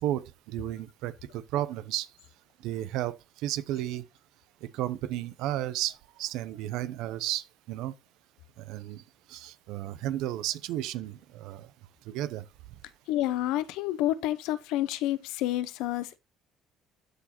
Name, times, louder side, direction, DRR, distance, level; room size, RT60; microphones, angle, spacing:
voice 1, 0.0-2.1 2.6-3.2 3.4-4.0 4.6-7.9 8.6-9.0 9.3-11.7 12.1-12.4, right 13 dB, 80° right, 0.6 m, -33 dB
voice 2, 13.1-16.2, left 14 dB, 85° left, 0.6 m, -29 dB
13.0 x 4.8 x 2.9 m
supercardioid pair, 80°, 0 cm